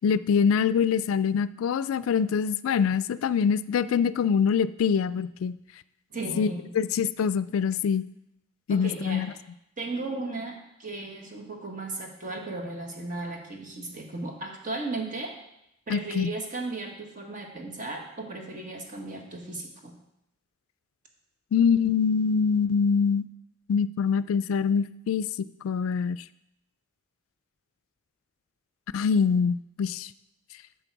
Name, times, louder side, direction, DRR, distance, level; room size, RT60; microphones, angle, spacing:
voice 1, 0.0-5.6 6.4-6.5 6.8-8.0 8.7-9.3 15.9-16.3 21.5-23.2 23.7-25.3 25.6-26.2 28.9-30.1, left 6 dB, 90° left, 16 dB, 0.3 m, -24 dB
voice 2, 6.1-6.7 8.7-9.3 9.8-15.3 15.9-19.9, right 2 dB, 40° right, 2 dB, 1.4 m, -35 dB
8.9 x 6.4 x 4.7 m, 0.82 s
head